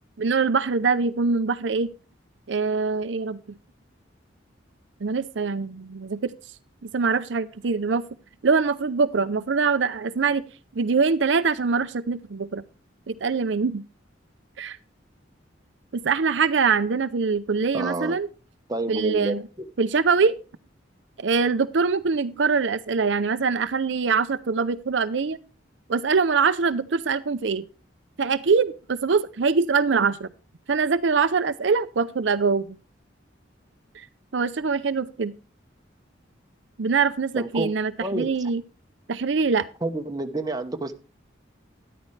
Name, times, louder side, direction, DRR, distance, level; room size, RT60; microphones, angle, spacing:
voice 1, 0.2-1.9 2.5-3.4 5.0-6.3 6.8-8.1 8.4-10.4 10.7-12.6 13.1-13.8 14.6-14.8 15.9-18.3 18.9-19.4 19.8-20.4 21.2-25.4 25.9-27.7 28.2-30.3 30.7-32.8 33.9-34.1 34.3-35.3 36.8-38.6 39.1-39.7, right 5 dB, 70° right, 0.6 m, -23 dB
voice 2, 17.7-18.2 18.7-19.4 37.4-37.7 38.0-38.3 39.8-40.9, right 2 dB, 20° right, 1.0 m, -28 dB
13.0 x 11.0 x 3.3 m
head